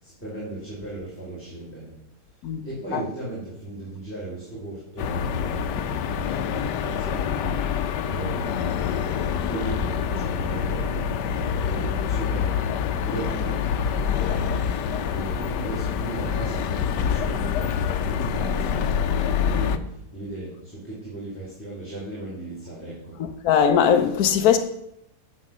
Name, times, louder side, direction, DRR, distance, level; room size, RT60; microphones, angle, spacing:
voice 1, 0.0-1.9 2.6-8.9 9.3-14.7 15.1-23.2, right 2 dB, 5° left, 3.6 m, -36 dB
sound 1, 5.0-19.8, left 7 dB, 90° left, 1.3 m, -26 dB
voice 2, 23.4-24.6, left 8 dB, 65° left, 1.1 m, -19 dB
11.0 x 7.2 x 6.0 m
omnidirectional pair, 1.8 m